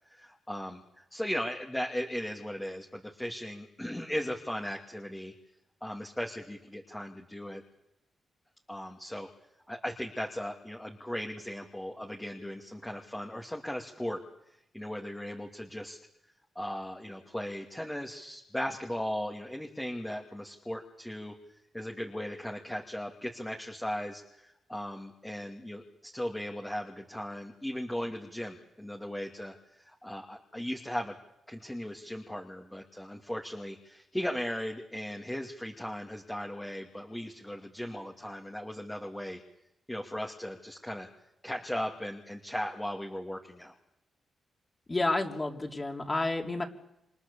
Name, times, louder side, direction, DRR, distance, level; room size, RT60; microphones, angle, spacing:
voice 1, 0.1-5.3 5.8-7.6 8.7-9.3 9.7-14.2 14.7-16.0 16.5-21.3 21.7-31.2 31.5-39.4 39.9-41.1 41.4-43.7, equal, 10° left, 1 dB, 2.7 m, -37 dB
voice 2, 44.9-46.6, left 2 dB, 25° left, 2 dB, 3.9 m, -30 dB
29.0 x 25.0 x 7.1 m, 0.83 s
cardioid pair, 75°, 0 cm